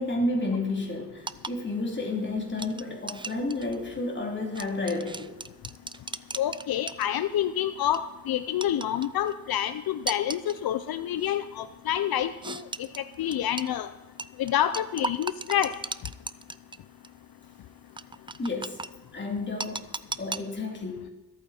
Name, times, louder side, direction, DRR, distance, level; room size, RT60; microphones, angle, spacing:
voice 1, 0.0-5.3 18.4-18.9 19.1-21.1, left 2 dB, 30° left, 0 dB, 3.4 m, -31 dB
sound 1, 1.2-7.4 7.8-8.1 8.6-9.3 10.1-10.6 11.2-11.4 12.4-13.7 14.2-16.8 17.0-17.1 18.0-18.9 19.6-20.4, right 3 dB, 15° right, 0.4 m, -36 dB
voice 2, 6.4-12.6 13.2-13.9 14.4-15.7, left 11 dB, 80° left, 12 dB, 0.6 m, -28 dB
25.5 x 8.8 x 4.4 m, 1.1 s
cardioid pair, 105°, 36 cm